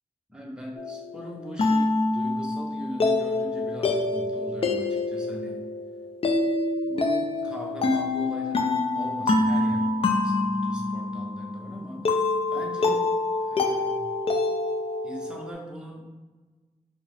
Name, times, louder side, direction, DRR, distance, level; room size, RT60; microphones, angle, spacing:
voice 1, 0.3-5.6 6.8-12.0 12.5-13.0 13.4-14.1 15.0-16.0, equal, 5° right, -2 dB, 0.7 m, -40 dB
sound 1, 0.8-15.5, left 2 dB, 50° left, 0.4 m, -26 dB
4.5 x 2.0 x 3.2 m, 1.3 s
wide cardioid pair, 95°, 12 cm